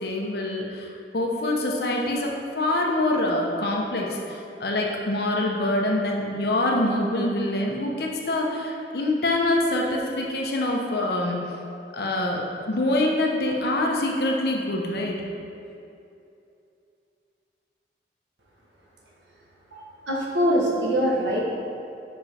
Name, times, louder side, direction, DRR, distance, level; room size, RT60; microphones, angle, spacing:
voice 1, 0.0-11.4 11.9-15.2, left 1 dB, 60° left, 0 dB, 0.8 m, -25 dB
voice 2, 19.7-21.4, equal, 90° right, -3 dB, 1.3 m, -23 dB
5.8 x 5.0 x 4.2 m, 2.6 s
head